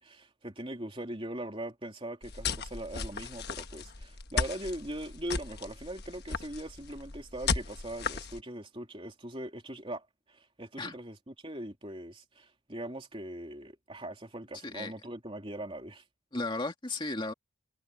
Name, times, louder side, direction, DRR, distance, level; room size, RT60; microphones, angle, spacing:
voice 1, 0.0-16.0, right 1 dB, 25° right, 3.3 m, -41 dB
sound 1, 2.2-8.4, left 5 dB, 50° left, 1.3 m, -36 dB
voice 2, 14.6-14.9 16.3-17.3, left 2 dB, 20° left, 2.3 m, -34 dB
head